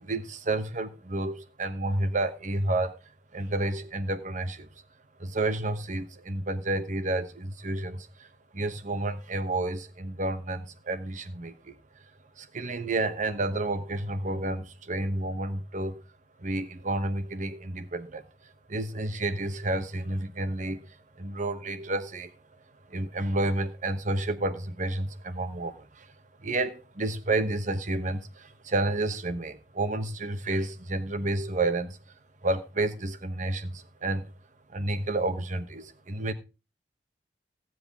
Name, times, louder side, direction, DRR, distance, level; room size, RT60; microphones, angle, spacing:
voice 1, 0.0-3.0 3.3-4.7 5.2-8.0 8.5-11.5 12.4-16.0 16.4-18.2 18.7-20.8 21.2-22.3 22.9-25.7 26.4-28.2 28.6-31.9 32.4-33.7 34.0-34.2 34.7-36.3, right 2 dB, 45° right, 1.1 m, -30 dB
16.0 x 7.8 x 3.6 m
head